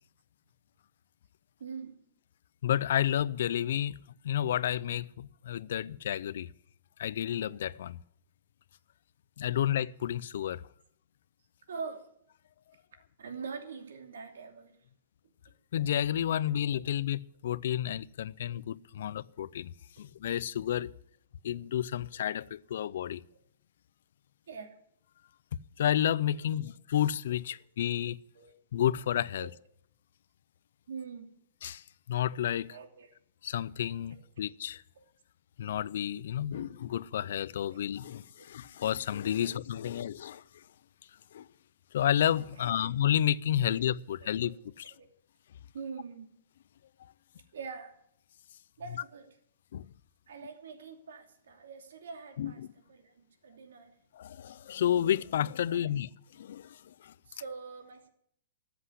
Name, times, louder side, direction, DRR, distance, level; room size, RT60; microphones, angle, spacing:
voice 1, 1.6-2.0 11.7-12.0 13.2-14.8 15.2-15.3 19.0-19.1 24.5-24.8 28.4-28.5 29.4-29.5 30.9-31.3 32.7-33.1 34.1-34.2 35.0-35.1 36.5-36.7 38.4-38.5 39.4-39.5 39.8-40.0 42.6-42.9 43.6-43.9 44.2-44.5 45.0-45.1 45.7-46.3 47.5-47.9 48.8-49.3 50.3-52.6 52.9-54.0 55.7-56.0 57.3-58.1, right 5 dB, 80° right, 2.8 m, -44 dB
voice 2, 2.6-4.0 4.2-6.5 7.0-8.0 9.4-10.6 15.7-20.9 21.4-23.2 25.8-28.2 28.7-29.5 31.6-32.8 33.4-34.8 35.6-40.6 41.3-41.5 41.9-44.9 49.7-49.9 52.4-52.7 54.1-57.1, left 10 dB, 65° left, 0.5 m, -31 dB
13.5 x 8.0 x 9.9 m
hypercardioid pair, 160°, 0 cm